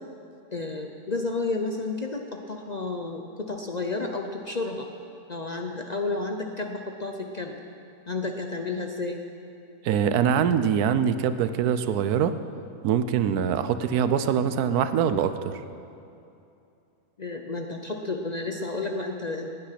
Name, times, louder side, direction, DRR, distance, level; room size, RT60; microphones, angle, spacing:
voice 1, 0.5-4.9 5.3-7.6 8.1-9.2 17.2-19.5, left 3 dB, 40° left, 3 dB, 0.6 m, -31 dB
voice 2, 9.8-12.3 12.8-15.6, right 8 dB, 85° right, 11 dB, 1.2 m, -23 dB
18.5 x 9.4 x 5.9 m, 2.7 s
omnidirectional pair, 1.6 m